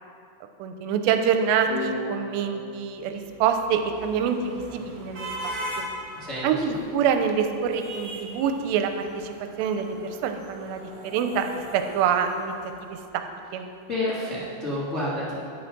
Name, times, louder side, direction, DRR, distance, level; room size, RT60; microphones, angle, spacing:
voice 1, 0.6-5.9 6.4-12.5 12.9-13.7, right 7 dB, 90° right, 6 dB, 2.9 m, -26 dB
sound 1, 1.7-4.5, left 1 dB, 85° left, 4.7 m, -36 dB
sound 2, 3.0-13.4, right 1 dB, 55° right, 1.8 m, -40 dB
voice 2, 6.1-6.5 13.9-15.3, left 1 dB, 70° left, -8 dB, 0.7 m, -29 dB
10.0 x 9.7 x 6.0 m, 2.4 s
omnidirectional pair, 4.9 m